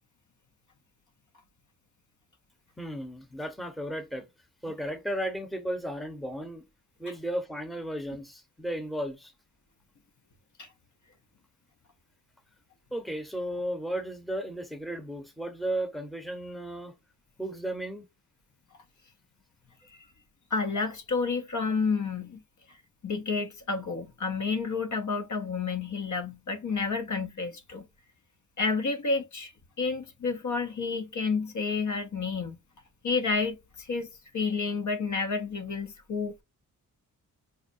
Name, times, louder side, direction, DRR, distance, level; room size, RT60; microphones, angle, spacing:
voice 1, 2.8-4.2 4.6-6.6 7.0-9.3 12.9-16.9 17.4-18.0, right 1 dB, ahead, 0.8 m, -34 dB
voice 2, 20.5-22.4 23.0-27.8 28.6-29.5 29.8-32.6 33.0-34.1 34.3-36.3, left 4 dB, 50° left, 0.7 m, -30 dB
5.5 x 2.0 x 2.5 m
cardioid pair, 65°, 37 cm